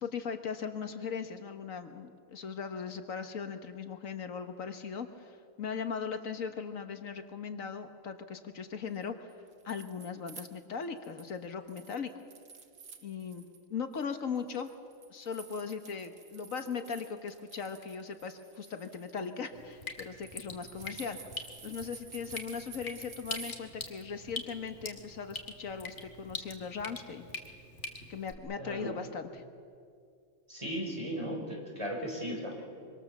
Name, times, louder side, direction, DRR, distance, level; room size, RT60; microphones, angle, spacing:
voice 1, 0.0-9.3 9.6-12.1 13.0-13.4 13.7-14.7 15.1-21.2 21.6-27.3 28.1-29.4, left 6 dB, 75° left, 7 dB, 1.6 m, -39 dB
sound 1, 9.3-11.4 11.7-13.6 13.9-23.5, right 6 dB, 80° right, 1.9 m, -51 dB
Drip, 19.5-28.3, left 2 dB, 55° left, 2.5 m, -44 dB
voice 2, 28.6-28.9 30.5-32.6, equal, 20° right, -1 dB, 6.1 m, -36 dB
25.0 x 25.0 x 7.2 m, 2.3 s
omnidirectional pair, 1.4 m